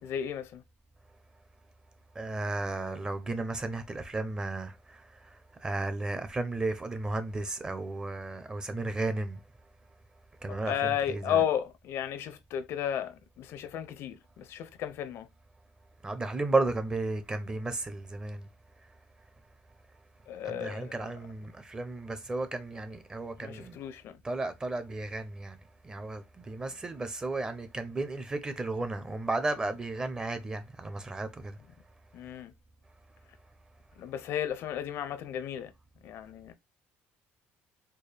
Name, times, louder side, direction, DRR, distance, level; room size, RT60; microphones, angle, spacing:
voice 1, 0.0-0.6 10.5-15.3 20.3-21.0 23.4-24.2 32.1-32.5 34.0-35.7 36.0-36.5, left 10 dB, 60° left, 0.5 m, -33 dB
voice 2, 2.2-5.0 5.6-9.4 10.4-11.5 16.0-18.5 20.4-23.8 24.2-25.6 25.8-31.6, right 2 dB, 15° right, 0.6 m, -34 dB
4.4 x 2.1 x 3.3 m
cardioid pair, 140°, 5 cm